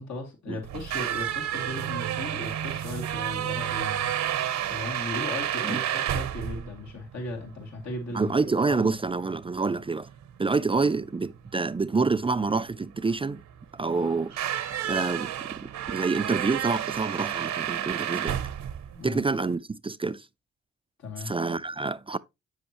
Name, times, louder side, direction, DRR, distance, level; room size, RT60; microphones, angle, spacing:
voice 1, 0.0-4.1 4.7-8.3 8.7-8.9 18.9-19.2 21.0-21.3, left 2 dB, 70° left, 2.4 m, -37 dB
sound 1, 0.6-19.5, right 11 dB, 70° right, 0.8 m, -31 dB
voice 2, 8.1-10.1 10.4-13.4 13.7-14.3 14.8-18.4 19.0-20.3 21.2-22.2, right 4 dB, 20° right, 0.4 m, -27 dB
7.7 x 6.3 x 2.9 m
supercardioid pair, 50°, 29 cm